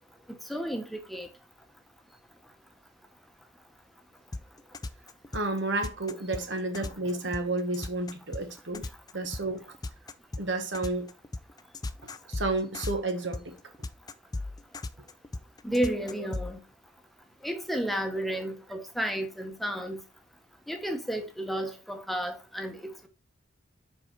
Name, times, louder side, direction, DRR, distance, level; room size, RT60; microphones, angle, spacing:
voice 1, 0.5-1.3 15.6-16.6 17.4-20.0 20.7-23.1, equal, ahead, 0.9 m, -32 dB
sound 1, 4.3-16.5, left 2 dB, 20° left, 0.4 m, -36 dB
voice 2, 5.3-8.8 9.1-9.6 10.4-11.1 12.3-13.5, right 2 dB, 75° right, 1.3 m, -31 dB
5.3 x 4.8 x 4.4 m
head